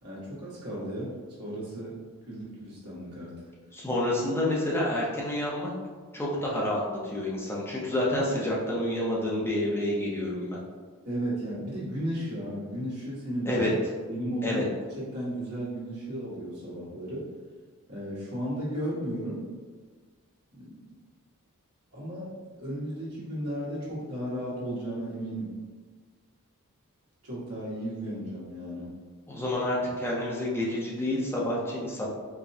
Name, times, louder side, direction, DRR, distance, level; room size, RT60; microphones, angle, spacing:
voice 1, 0.0-2.0 2.3-3.3 11.0-13.7 14.1-14.6 14.9-17.3 17.9-19.4 20.5-20.8 21.9-25.5 27.2-28.9, right 1 dB, 85° right, -8 dB, 1.5 m, -34 dB
voice 2, 3.7-5.7 6.1-10.6 13.5-13.7 14.4-14.6 29.3-32.1, left 1 dB, 10° left, -5 dB, 0.5 m, -29 dB
4.7 x 2.2 x 2.6 m, 1.4 s
head